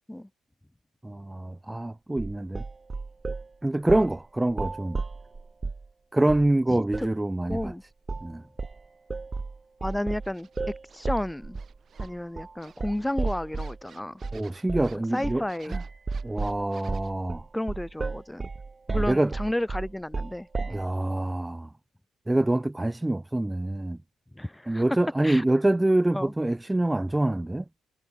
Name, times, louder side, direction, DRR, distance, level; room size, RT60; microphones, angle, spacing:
voice 1, 1.0-2.6 3.6-5.0 6.1-7.7 8.2-8.4 14.3-15.8 16.2-17.4 18.9-19.3 20.7-21.7 22.3-24.0 24.7-27.6, right 1 dB, 10° right, 0.7 m, -26 dB
sound 1, 2.2-3.5 3.9-4.2 4.5-5.9 6.3-6.5 6.9-7.1 7.5-7.7 8.1-8.3 8.6-13.8 14.2-14.4 14.7-15.0 15.2-15.5 15.7-20.9, right 4 dB, 30° right, 3.5 m, -33 dB
voice 2, 6.7-7.1 7.5-7.8 9.8-10.5 10.9-11.6 12.0-14.2 15.1-15.8 17.5-18.5 18.9-20.8 24.3-24.8 25.2-25.4 26.1-26.3, left 1 dB, 5° left, 6.7 m, -32 dB
sound 2, 9.9-11.1 11.5-12.3 12.6-17.1, right 7 dB, 50° right, 7.8 m, -55 dB
hypercardioid pair, 50°, 0 cm